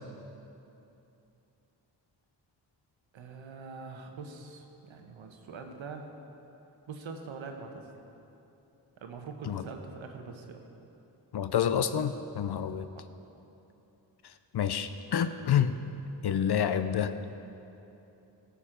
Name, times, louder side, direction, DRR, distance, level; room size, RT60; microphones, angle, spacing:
voice 1, 3.1-6.1 6.9-7.9 9.0-10.6, right 4 dB, 90° right, 4 dB, 0.9 m, -43 dB
voice 2, 11.3-12.9 14.5-15.7 16.2-17.1, left 9 dB, 60° left, 11 dB, 0.5 m, -28 dB
13.5 x 6.9 x 3.8 m, 2.9 s
cardioid pair, 45°, 45 cm